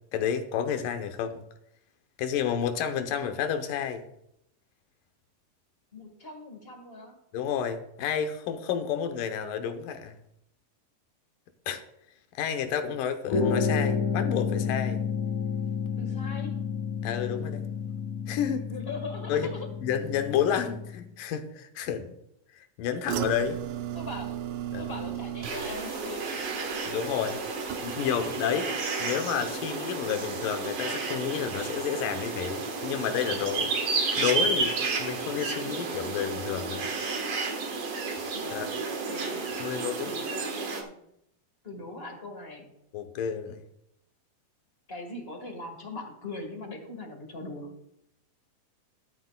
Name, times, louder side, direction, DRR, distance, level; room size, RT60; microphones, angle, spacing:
voice 1, 0.1-1.4 2.2-4.1 7.3-10.2 11.7-11.8 12.3-15.0 17.0-17.7 18.3-18.7 19.3-19.5 19.8-22.2 22.6-23.6 24.7-25.0 26.9-27.4 27.8-28.7 29.0-36.9 38.5-38.7 39.6-40.1 42.9-43.6, left 8 dB, 85° left, 7 dB, 2.6 m, -30 dB
voice 2, 5.9-7.2 16.0-16.6 18.7-19.7 23.9-24.5 24.8-26.5 38.3-39.5 40.0-40.9 41.6-42.7 44.9-47.8, left 2 dB, 30° left, 3 dB, 1.1 m, -40 dB
sound 1, 13.3-21.0, left 5 dB, 65° left, 2.6 m, -30 dB
sound 2, 23.1-28.3 28.6-29.1 29.5-29.6, right 11 dB, 80° right, 2.2 m, -36 dB
sound 3, 25.4-40.8, right 4 dB, 55° right, 2.4 m, -32 dB
13.0 x 12.5 x 2.3 m, 0.77 s
omnidirectional pair, 3.8 m